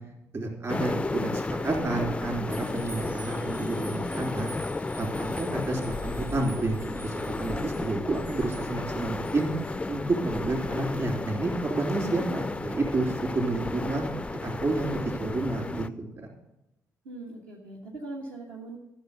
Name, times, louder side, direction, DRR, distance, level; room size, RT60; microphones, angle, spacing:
voice 1, 0.3-4.5 5.0-9.5 9.9-16.3, right 2 dB, 40° right, 1 dB, 3.7 m, -30 dB
sound 1, 0.7-15.9, left 2 dB, 15° left, 0.4 m, -33 dB
sound 2, 2.5-9.8 10.3-10.5, right 1 dB, 80° right, 1.4 m, -49 dB
voice 2, 17.0-18.8, right 2 dB, 60° right, -3 dB, 1.4 m, -40 dB
13.0 x 6.7 x 6.8 m, 0.88 s
figure-of-eight pair, 40°, 9 cm